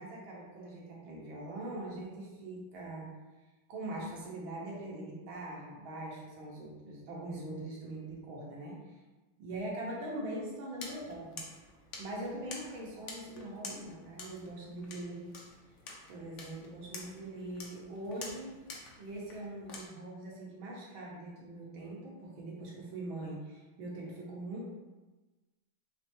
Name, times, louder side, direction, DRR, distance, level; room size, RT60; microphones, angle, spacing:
voice 1, 0.0-3.1 3.7-8.8 9.4-11.5 12.0-15.3 16.1-18.6 19.0-24.7, right 1 dB, 80° right, -4 dB, 1.8 m, -42 dB
sound 1, 10.8-19.9, left 3 dB, 70° left, 0.7 m, -49 dB
4.9 x 3.3 x 3.0 m, 1.2 s
omnidirectional pair, 2.2 m